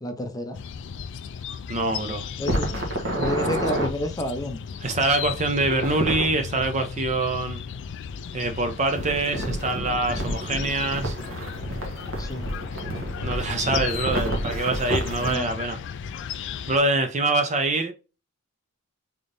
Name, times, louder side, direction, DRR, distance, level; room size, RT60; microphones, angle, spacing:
voice 1, 0.0-0.6 2.4-4.6 12.2-12.5 15.2-15.5, left 1 dB, 15° left, 0.6 m, -30 dB
sound 1, 0.5-16.8, left 7 dB, 55° left, 0.4 m, -35 dB
voice 2, 1.7-2.3 4.8-7.6 8.3-11.2 13.2-15.8 16.7-17.9, right 2 dB, 30° right, 0.6 m, -25 dB
sound 2, 2.4-3.9 5.6-6.3 9.0-15.3, right 1 dB, 60° right, 1.2 m, -29 dB
3.7 x 3.6 x 2.6 m
head